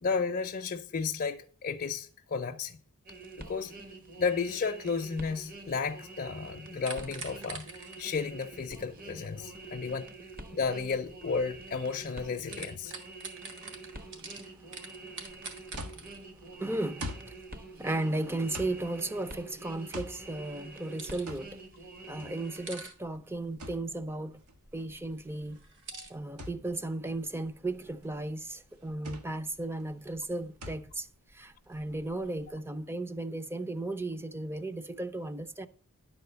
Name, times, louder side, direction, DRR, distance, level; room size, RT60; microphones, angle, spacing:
voice 1, 0.0-2.8 3.4-3.7 4.2-10.0 10.5-12.9 25.9-26.1, left 5 dB, 45° left, 0.5 m, -33 dB
sound 1, 3.1-22.8, right 2 dB, 40° right, 1.0 m, -47 dB
sound 2, 6.8-12.1 12.4-16.2 20.4-21.4 21.8-21.9 22.3-22.9 25.5-26.1, right 4 dB, 60° right, 1.7 m, -46 dB
voice 2, 13.7-15.7 16.5-17.4 17.8-21.6 22.1-24.4 24.7-25.6 26.1-31.1 31.3-35.7, right 2 dB, 10° right, 0.5 m, -35 dB
sound 3, 15.2-32.5, equal, 80° right, 1.3 m, -47 dB
10.5 x 4.2 x 6.8 m
head